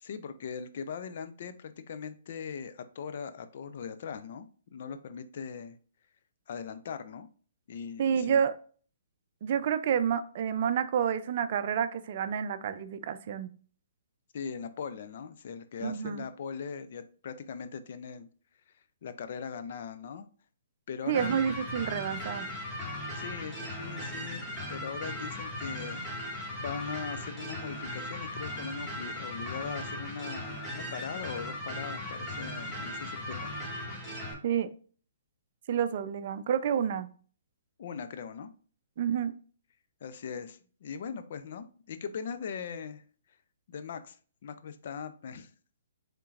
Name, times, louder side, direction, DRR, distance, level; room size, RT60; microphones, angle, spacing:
voice 1, 0.0-5.8 6.5-7.3 7.7-8.4 14.3-18.3 19.0-20.3 20.9-21.4 23.1-33.5 37.8-38.5 40.0-43.0 43.7-44.2 44.4-45.5, left 6 dB, 55° left, 0.5 m, -40 dB
voice 2, 8.0-8.5 9.4-13.5 15.8-16.2 21.1-22.5 34.4-34.7 35.7-37.1 39.0-39.3, right 8 dB, 50° right, 0.5 m, -29 dB
sound 1, 21.1-34.3, left 1 dB, 5° left, 2.0 m, -38 dB
5.6 x 3.7 x 2.5 m
hypercardioid pair, 140°, 0 cm